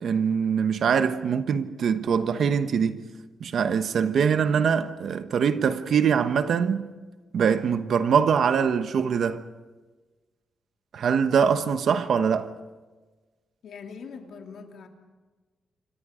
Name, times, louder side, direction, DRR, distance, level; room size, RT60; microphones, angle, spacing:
voice 1, 0.0-3.0 3.4-6.9 7.3-9.4 10.9-12.5, right 7 dB, 55° right, 1.2 m, -23 dB
voice 2, 13.6-14.9, left 5 dB, 60° left, 2.6 m, -42 dB
28.0 x 25.0 x 5.1 m
wide cardioid pair, 170°, 0 cm